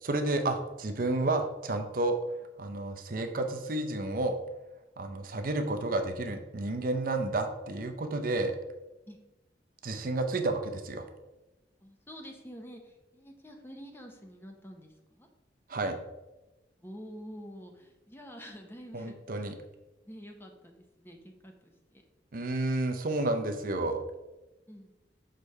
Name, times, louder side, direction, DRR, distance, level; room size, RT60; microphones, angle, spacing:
voice 1, 0.0-2.2 2.6-4.4 5.0-8.6 9.8-11.1 15.7-16.0 18.9-19.5 22.3-24.0, right 2 dB, 50° right, 6 dB, 0.6 m, -31 dB
voice 2, 11.8-15.3 16.8-19.5 20.1-22.0 24.7-24.9, equal, 10° left, 3 dB, 0.7 m, -48 dB
6.5 x 3.2 x 5.3 m, 1.1 s
head